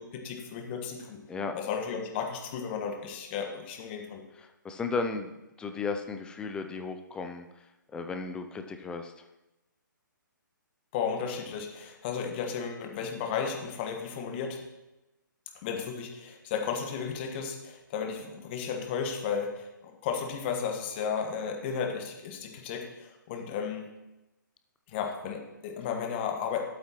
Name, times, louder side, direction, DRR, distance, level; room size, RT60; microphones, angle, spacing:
voice 1, 0.0-1.2 1.5-4.2 10.9-14.6 15.6-23.9 24.9-26.6, left 6 dB, 30° left, 3 dB, 1.4 m, -34 dB
voice 2, 4.4-9.3, left 4 dB, 10° left, 6 dB, 0.4 m, -35 dB
11.5 x 8.3 x 3.0 m, 0.98 s
figure-of-eight pair, 135°, 11 cm